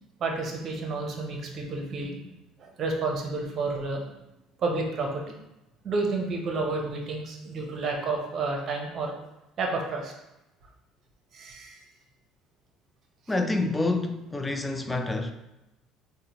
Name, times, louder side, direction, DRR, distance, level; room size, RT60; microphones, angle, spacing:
voice 1, 0.2-2.2 2.6-4.0 4.6-5.2 5.8-9.1 9.6-10.1 11.3-11.8, right 3 dB, 50° right, 0.7 m, -30 dB
voice 2, 13.3-15.3, left 2 dB, 15° left, 0.4 m, -27 dB
3.8 x 2.1 x 2.9 m
supercardioid pair, 75°, 0 cm